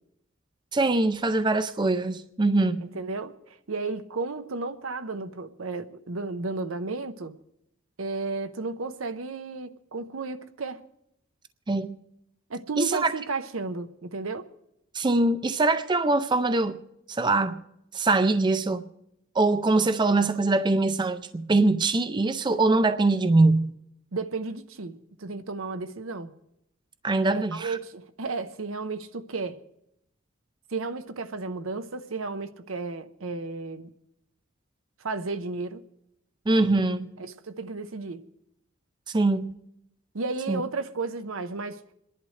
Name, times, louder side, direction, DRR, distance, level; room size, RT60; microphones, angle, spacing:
voice 1, 0.7-2.8 11.7-12.0 12.8-13.1 14.9-16.8 17.1-17.6 17.9-18.9 19.3-23.7 27.0-27.8 36.5-37.1 39.1-39.5 40.5-40.6, right 2 dB, 20° right, 0.5 m, -23 dB
voice 2, 2.8-7.3 8.0-10.8 12.5-14.5 24.1-26.3 27.3-29.6 30.7-33.9 35.0-35.8 37.2-38.2 40.1-41.8, right 3 dB, 80° right, 0.8 m, -33 dB
27.0 x 11.0 x 3.2 m
head